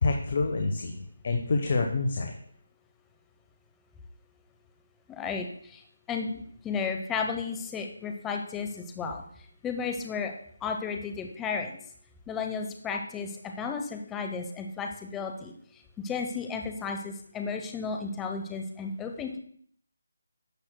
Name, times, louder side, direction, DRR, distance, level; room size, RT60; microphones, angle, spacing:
voice 1, 0.0-2.3, left 3 dB, 50° left, 5 dB, 1.0 m, -27 dB
voice 2, 5.1-5.8 6.1-9.2 9.6-10.3 10.6-11.7 12.3-15.5 16.0-19.4, left 5 dB, 10° left, 4 dB, 0.8 m, -33 dB
16.0 x 6.2 x 2.2 m, 0.62 s
figure-of-eight pair, 155°, 0 cm